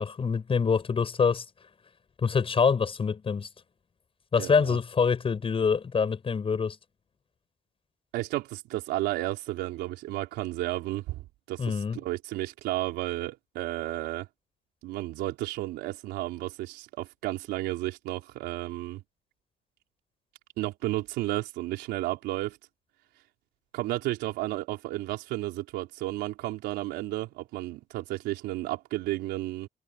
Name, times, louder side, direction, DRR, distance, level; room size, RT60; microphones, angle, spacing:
voice 1, 0.0-1.4 2.2-3.5 4.3-6.8 11.6-12.0, left 5 dB, 35° left, 6.3 m, -25 dB
voice 2, 4.4-4.8 8.1-14.3 14.8-19.0 20.6-22.6 23.7-29.7, right 17 dB, 90° right, 4.2 m, -32 dB
cardioid pair, 110°, 17 cm